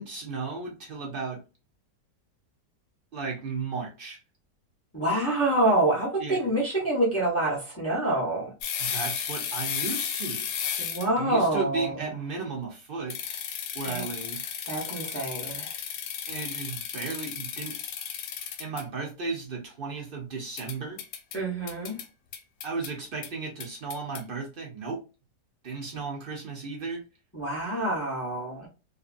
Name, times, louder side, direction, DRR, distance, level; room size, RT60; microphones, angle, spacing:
voice 1, 0.0-1.4 3.1-4.2 6.2-6.4 8.8-10.5 11.1-13.2 13.7-14.4 16.3-17.8 18.6-21.0 22.6-25.0 25.6-27.0, right 4 dB, 60° right, 0.6 m, -34 dB
voice 2, 4.9-8.5 10.8-12.0 13.8-14.0 14.7-15.7 21.3-21.9 27.3-28.7, right 1 dB, 20° left, 0.3 m, -26 dB
sound 1, 8.6-11.2 13.1-18.8 20.6-21.4 21.7-22.0 22.3-22.9 23.2-23.3 23.6-24.2, left 8 dB, 90° left, 1.3 m, -34 dB
2.6 x 2.6 x 2.5 m
omnidirectional pair, 1.9 m